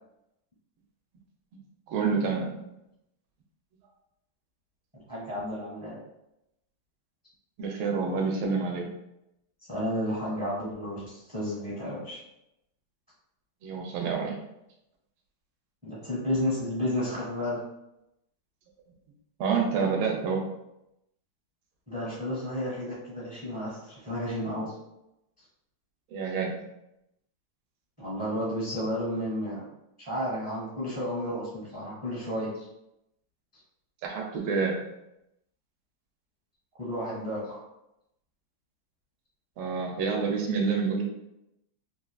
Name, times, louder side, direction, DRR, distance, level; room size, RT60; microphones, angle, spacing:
voice 1, 1.9-2.6 7.6-8.9 13.6-14.4 19.4-20.5 26.1-26.6 34.0-34.8 39.6-41.0, right 5 dB, 85° right, 0 dB, 1.4 m, -28 dB
voice 2, 5.1-6.0 9.7-12.2 15.8-17.6 21.9-24.7 28.0-29.7 30.0-32.7 36.8-37.6, equal, 20° right, -8 dB, 0.6 m, -32 dB
3.6 x 2.4 x 2.2 m, 0.85 s
omnidirectional pair, 2.2 m